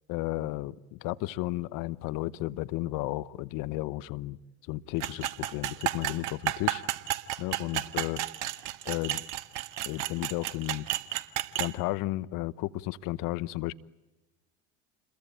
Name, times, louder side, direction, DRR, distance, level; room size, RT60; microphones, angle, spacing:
voice 1, 0.1-4.4 4.6-6.8 7.4-8.2 8.8-9.2 9.8-10.9 11.6-13.7, left 17 dB, 55° left, 1.0 m, -33 dB
sound 1, 5.0-11.7, right 14 dB, 50° right, 1.8 m, -32 dB
29.5 x 22.5 x 9.0 m
hypercardioid pair, 95°, 38 cm